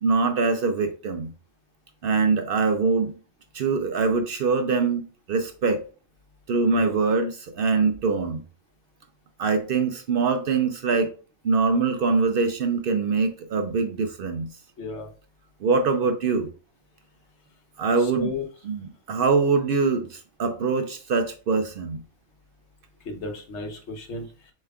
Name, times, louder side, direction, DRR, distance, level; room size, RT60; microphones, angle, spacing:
voice 1, 0.0-1.3 2.0-3.1 3.5-5.0 5.3-5.8 6.5-8.4 9.4-11.1 11.4-14.5 15.6-16.5 17.8-18.4 18.7-22.0, right 4 dB, 60° right, 8 dB, 0.6 m, -23 dB
voice 2, 14.8-15.1 18.0-18.4 23.0-24.5, left 3 dB, 70° left, 4 dB, 1.2 m, -34 dB
6.8 x 3.2 x 2.3 m, 0.37 s
omnidirectional pair, 1.3 m